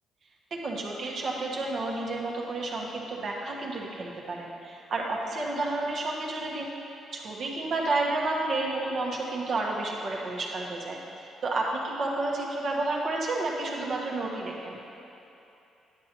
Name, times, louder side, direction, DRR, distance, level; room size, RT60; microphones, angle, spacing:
voice 1, 0.5-14.8, right 2 dB, 60° right, -2 dB, 1.3 m, -31 dB
10.0 x 7.9 x 3.0 m, 2.9 s
cardioid pair, 90°, 0 cm